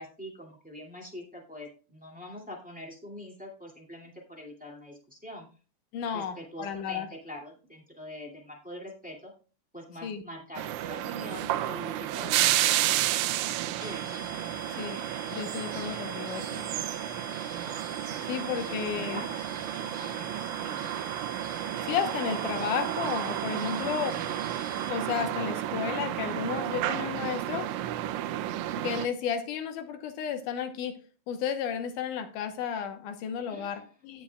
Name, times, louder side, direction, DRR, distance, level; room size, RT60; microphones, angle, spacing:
voice 1, 0.0-5.5 6.1-9.3 9.7-13.3 13.8-14.1 18.6-21.0 23.5-23.9 24.3-24.4 33.5-33.8, left 1 dB, 5° right, -2 dB, 1.8 m, -44 dB
voice 2, 5.9-7.1 10.0-10.2 14.8-15.0 15.3-16.9 18.3-19.2 21.8-24.1 24.9-27.7 28.8-31.0 31.3-34.2, left 8 dB, 85° left, 7 dB, 2.5 m, -33 dB
sound 1, 10.6-29.1, right 13 dB, 80° right, 1.8 m, -31 dB
sound 2, 13.8-25.2, equal, 65° left, 1.2 m, -44 dB
17.0 x 6.0 x 2.3 m, 0.37 s
omnidirectional pair, 3.6 m